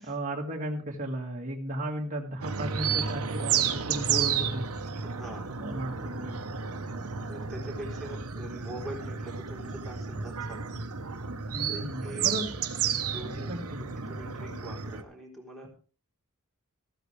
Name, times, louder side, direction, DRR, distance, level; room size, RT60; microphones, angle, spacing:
voice 1, 0.0-4.7 5.6-6.3 11.5-12.5 13.5-13.8, right 1 dB, 35° right, -1 dB, 1.9 m, -35 dB
sound 1, 2.4-15.0, right 7 dB, 80° right, 1.1 m, -32 dB
voice 2, 5.0-5.5 6.0-6.1 7.2-10.6 11.7-12.4 13.0-13.5 13.8-15.7, right 1 dB, ahead, -1 dB, 3.7 m, -43 dB
14.0 x 13.0 x 3.3 m, 0.38 s
head